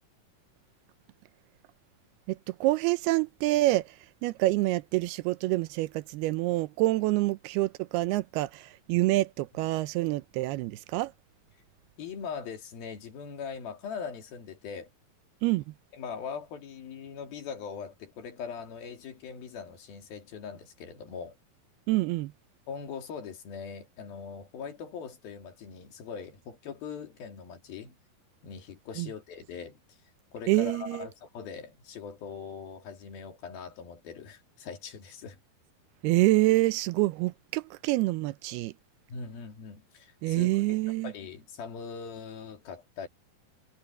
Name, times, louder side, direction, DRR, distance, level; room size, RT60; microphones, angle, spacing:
voice 1, 2.3-4.0 4.2-11.1 15.4-15.6 21.9-22.3 29.0-29.1 30.5-31.1 36.0-38.7 40.2-41.1, right 19 dB, 85° right, 2.7 m, -27 dB
voice 2, 12.0-14.9 15.9-21.4 22.7-28.0 28.4-29.8 30.3-35.4 39.1-40.5 41.0-43.1, left 6 dB, 70° left, 4.5 m, -41 dB
omnidirectional pair, 4.4 m